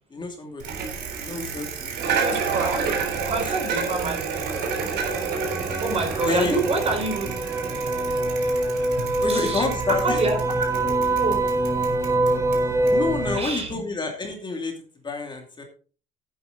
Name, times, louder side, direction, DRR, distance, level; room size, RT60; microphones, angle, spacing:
voice 1, 0.1-0.6 1.2-2.0 3.4-3.5 6.3-6.6 9.2-10.2 12.9-14.7 15.0-15.6, left 3 dB, 25° left, 3 dB, 2.5 m, -28 dB
Bicycle, 0.6-13.7, right 6 dB, 80° right, 3.7 m, -31 dB
voice 2, 2.2-4.7 5.1-5.3 5.8-7.3 9.3-10.4 10.8-11.5 13.3-13.8, right 3 dB, 35° right, 3 dB, 4.5 m, -28 dB
sound 1, 3.8-13.4, right 2 dB, 15° right, 1.1 m, -25 dB
11.0 x 9.5 x 4.0 m, 0.39 s
cardioid pair, 110°, 17 cm